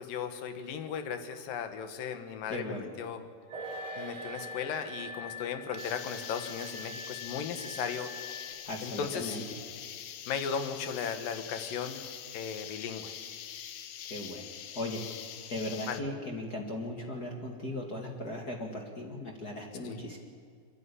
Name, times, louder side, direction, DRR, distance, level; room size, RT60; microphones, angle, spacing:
voice 1, 0.0-3.3 4.0-8.1 8.8-9.4 10.3-12.1 12.3-13.1 15.9-16.0 19.8-20.0, left 7 dB, 65° left, 8 dB, 2.8 m, -36 dB
voice 2, 2.5-2.9 8.6-9.4 14.1-14.4 14.7-15.0 15.5-20.2, left 1 dB, 45° left, 1 dB, 1.2 m, -37 dB
sound 1, 3.5-10.2 10.5-10.6, right 3 dB, 40° right, 3.5 m, -48 dB
Glass, 3.5-8.5, left 2 dB, 70° right, 3.3 m, -45 dB
sound 2, 5.8-16.0, left 10 dB, 85° left, 1.6 m, -44 dB
28.0 x 11.5 x 9.8 m, 2.1 s
omnidirectional pair, 4.7 m